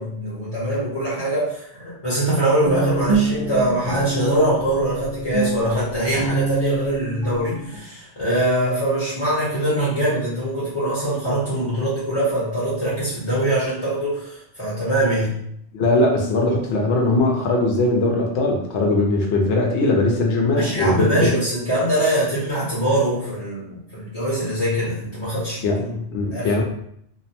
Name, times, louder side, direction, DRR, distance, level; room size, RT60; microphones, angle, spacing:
voice 1, 0.0-15.3 20.6-26.0 26.3-26.5, right 1 dB, 30° left, -9 dB, 0.9 m, -23 dB
Guitar, 2.6-7.8, right 3 dB, 80° right, 0.3 m, -26 dB
voice 2, 15.7-21.3 25.6-25.8 26.1-26.6, left 2 dB, 70° left, 0 dB, 0.8 m, -20 dB
2.6 x 2.0 x 2.8 m, 0.71 s
omnidirectional pair, 1.3 m